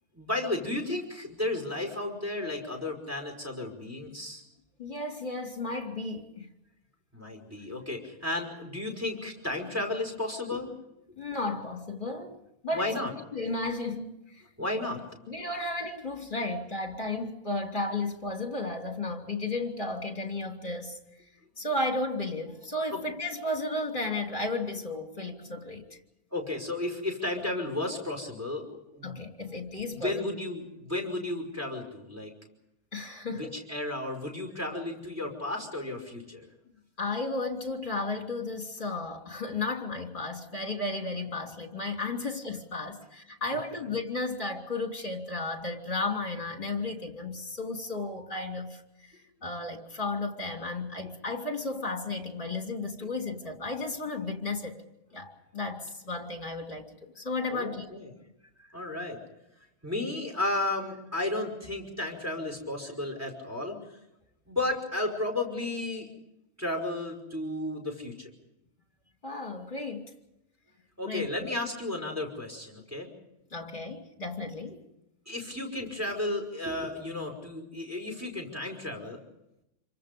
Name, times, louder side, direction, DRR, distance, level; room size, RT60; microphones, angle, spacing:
voice 1, 0.1-4.4 7.1-10.7 12.7-13.1 14.6-15.2 22.9-23.0 26.3-29.2 29.9-32.3 33.4-36.5 43.5-43.9 53.0-53.1 57.5-58.1 58.6-59.2 59.8-64.0 64.5-66.1 66.6-68.3 71.0-73.1 75.3-79.2, left 2 dB, 10° right, 3 dB, 5.3 m, -33 dB
voice 2, 4.8-6.5 11.2-13.1 13.3-14.4 15.3-21.0 21.6-26.0 29.0-30.3 32.9-33.6 37.0-54.8 55.1-56.8 57.1-57.9 69.2-70.1 71.1-71.3 73.5-74.8, left 2 dB, 35° left, 3 dB, 3.2 m, -34 dB
27.5 x 24.5 x 5.3 m, 0.88 s
omnidirectional pair, 1.6 m